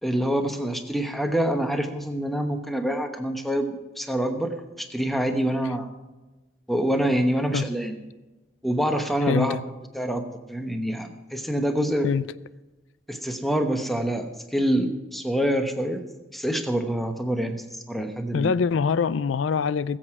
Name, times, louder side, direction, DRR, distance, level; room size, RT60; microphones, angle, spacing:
voice 1, 0.0-5.9 6.7-8.0 8.6-9.6 9.9-10.2 10.5-12.1 13.1-16.0 16.3-18.5, right 1 dB, ahead, 0.9 m, -26 dB
voice 2, 9.3-9.6 12.0-12.2 18.3-20.0, left 6 dB, 75° left, 0.4 m, -24 dB
20.0 x 7.8 x 4.8 m
head